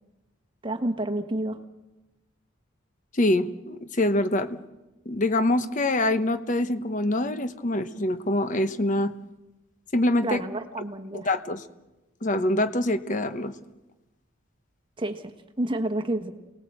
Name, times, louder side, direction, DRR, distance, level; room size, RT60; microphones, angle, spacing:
voice 1, 0.6-1.6 10.2-11.3 15.0-16.3, right 1 dB, 25° right, 6 dB, 1.3 m, -29 dB
voice 2, 3.1-4.6 5.1-9.1 9.9-10.4 11.1-11.6 12.2-13.5, left 1 dB, 35° left, 10 dB, 1.0 m, -25 dB
28.5 x 19.0 x 7.9 m, 1.1 s
head